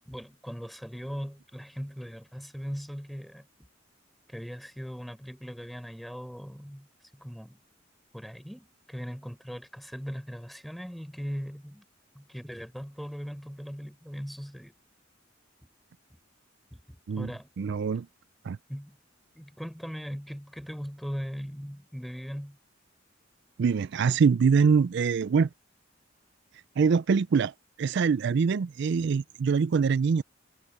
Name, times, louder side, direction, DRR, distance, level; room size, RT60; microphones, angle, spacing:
voice 1, 0.1-3.4 4.3-6.9 7.1-7.6 8.1-11.8 12.1-14.7 16.7-17.8 18.7-19.0 19.4-22.6, equal, ahead, 4.3 m, -39 dB
voice 2, 17.6-18.1 18.4-18.6 23.6-25.5 26.8-30.2, right 5 dB, 60° right, 0.4 m, -24 dB
head